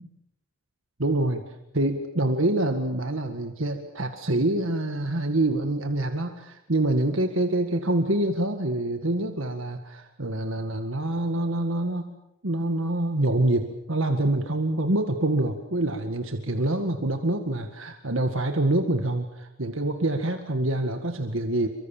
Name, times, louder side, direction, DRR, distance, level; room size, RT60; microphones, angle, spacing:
voice 1, 1.0-1.4 1.7-12.1 12.4-21.7, right 1 dB, 65° right, 6 dB, 1.9 m, -26 dB
28.5 x 24.5 x 7.3 m, 0.85 s
head